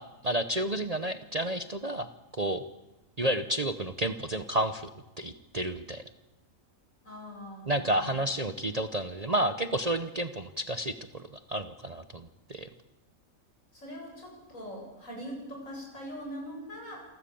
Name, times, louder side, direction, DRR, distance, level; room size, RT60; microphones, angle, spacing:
voice 1, 0.0-2.1 2.3-2.6 3.2-4.9 5.2-6.0 7.7-12.7, right 1 dB, 30° right, 10 dB, 0.9 m, -31 dB
voice 2, 7.0-8.2 13.7-17.1, equal, 70° left, -1 dB, 8.5 m, -42 dB
27.5 x 13.0 x 8.7 m, 1.0 s
omnidirectional pair, 1.4 m